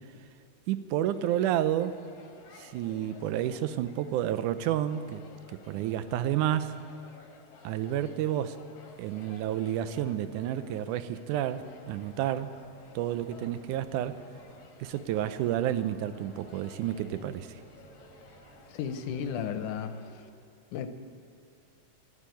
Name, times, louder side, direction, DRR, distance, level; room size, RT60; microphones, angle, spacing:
voice 1, 0.7-2.0 2.6-6.8 7.6-8.6 9.0-12.5 13.0-14.2 14.8-17.6, right 11 dB, 90° right, 13 dB, 2.2 m, -30 dB
sound 1, 1.1-20.2, left 3 dB, 70° left, 2.8 m, -54 dB
sound 2, 11.5-19.9, right 3 dB, 60° right, 3.3 m, -58 dB
voice 2, 18.7-20.0 20.7-20.9, left 7 dB, 90° left, 9 dB, 2.3 m, -33 dB
13.0 x 12.0 x 9.1 m, 2.5 s
omnidirectional pair, 3.5 m